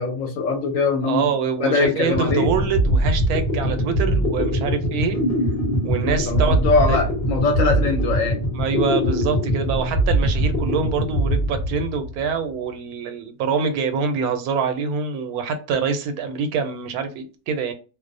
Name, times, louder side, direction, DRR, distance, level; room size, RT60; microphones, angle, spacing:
voice 1, 0.0-1.3 1.6-2.5 6.1-8.4, left 3 dB, 70° left, 3 dB, 1.1 m, -22 dB
voice 2, 1.0-5.2 5.8-6.6 6.9-7.1 8.5-17.7, right 5 dB, 85° right, 8 dB, 1.1 m, -25 dB
sound 1, 1.5-1.6 1.8-12.3, equal, 45° left, 0.9 m, -22 dB
2.5 x 2.0 x 2.5 m, 0.33 s
omnidirectional pair, 1.5 m